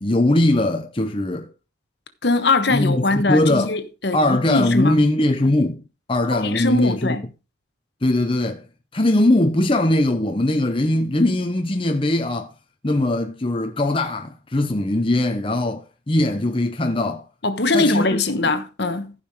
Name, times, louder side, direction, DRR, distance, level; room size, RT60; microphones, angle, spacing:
voice 1, 0.0-1.5 2.7-3.7 4.1-5.8 6.1-7.1 8.0-8.7 8.9-12.5 12.8-17.2 17.7-18.5, left 1 dB, 25° left, 0.8 m, -20 dB
voice 2, 2.2-5.0 6.3-7.2 17.4-19.1, left 3 dB, 55° left, 1.3 m, -21 dB
14.5 x 5.7 x 4.8 m
head